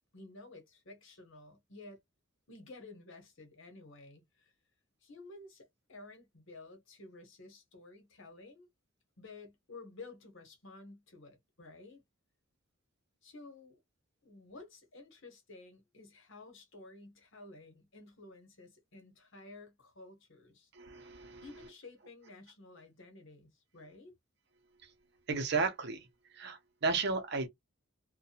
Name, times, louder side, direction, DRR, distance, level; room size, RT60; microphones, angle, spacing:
voice 1, 0.1-2.0 2.5-4.5 5.0-8.7 9.2-12.0 13.2-13.8 14.2-20.7 21.4-24.2, left 3 dB, 60° left, 1.0 m, -53 dB
voice 2, 20.7-21.4 25.3-26.1 26.3-27.5, right 4 dB, 50° right, 0.6 m, -33 dB
2.6 x 2.2 x 2.7 m
head